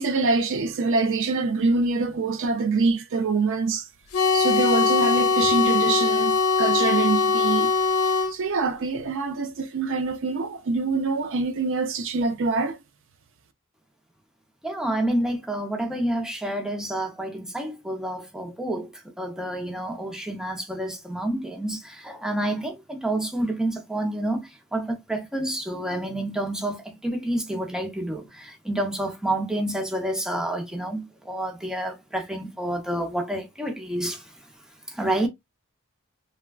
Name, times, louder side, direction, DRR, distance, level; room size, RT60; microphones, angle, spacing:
voice 1, 0.0-3.9 4.3-7.7 8.3-12.8, right 3 dB, 60° right, 0.4 m, -25 dB
sound 1, 4.1-8.3, left 5 dB, 80° left, 0.6 m, -21 dB
voice 2, 14.6-34.4 34.9-35.3, right 1 dB, 5° right, 0.6 m, -29 dB
3.3 x 2.2 x 2.3 m
head